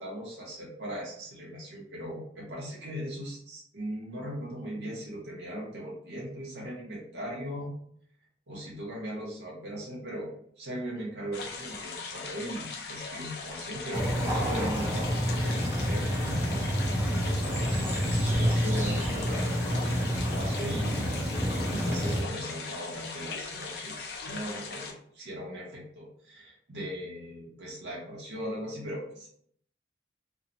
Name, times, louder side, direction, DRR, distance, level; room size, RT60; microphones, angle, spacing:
voice 1, 0.0-7.7 8.5-20.9 21.7-29.3, equal, 80° right, -4 dB, 0.7 m, -39 dB
sound 1, 11.3-24.9, left 4 dB, 60° left, 0.4 m, -39 dB
sound 2, 13.9-22.2, equal, 15° right, 0.5 m, -28 dB
2.9 x 2.0 x 2.5 m, 0.65 s
head